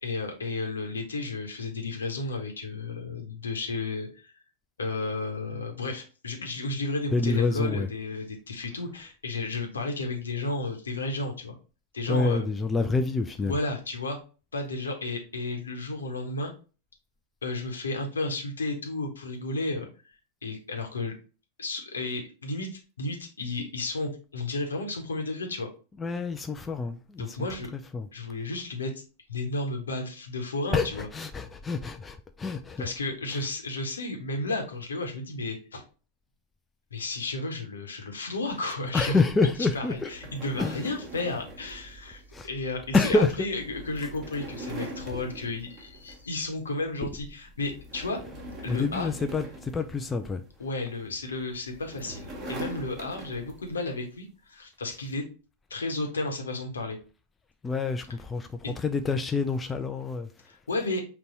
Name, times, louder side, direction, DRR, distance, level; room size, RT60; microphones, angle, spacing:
voice 1, 0.0-4.3 4.8-11.5 11.9-12.4 13.4-14.2 14.5-16.5 17.4-19.9 20.4-21.1 21.6-25.7 27.2-27.7 28.1-28.9 29.3-31.1 32.8-35.8 36.9-39.2 39.7-48.2 48.6-49.1 50.6-55.2 55.7-57.0 60.5-61.0, left 2 dB, 70° left, 0.9 m, -33 dB
voice 2, 7.1-7.9 12.1-13.6 26.0-28.1 30.7-32.9 33.3-33.4 38.9-40.1 40.6-40.8 42.3-42.5 42.9-43.5 45.1-45.2 48.7-50.4 57.6-60.3, left 3 dB, 15° left, 0.3 m, -27 dB
sound 1, 40.0-46.5 46.9-47.2 47.6-50.6 51.4-53.8, right 1 dB, 25° right, 1.1 m, -42 dB
4.0 x 2.2 x 4.0 m
figure-of-eight pair, 90°, 0 cm